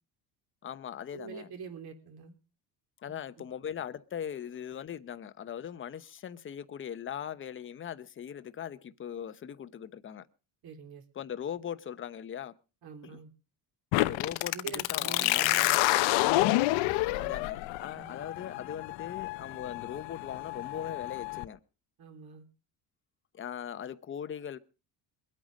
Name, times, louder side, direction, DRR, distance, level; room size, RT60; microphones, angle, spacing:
voice 1, 0.6-1.5 3.0-10.3 11.1-12.5 13.0-13.2 14.0-14.6 14.9-15.5 16.1-21.6 23.3-24.6, left 9 dB, 30° left, 0.8 m, -40 dB
voice 2, 1.1-2.3 10.6-11.0 12.8-13.3 14.5-15.8 17.1-17.4 17.9-18.1 22.0-22.5, right 6 dB, 55° right, 3.2 m, -45 dB
sound 1, 13.9-21.4, left 19 dB, 90° left, 0.9 m, -29 dB
22.5 x 8.9 x 5.2 m
cardioid pair, 145°, 43 cm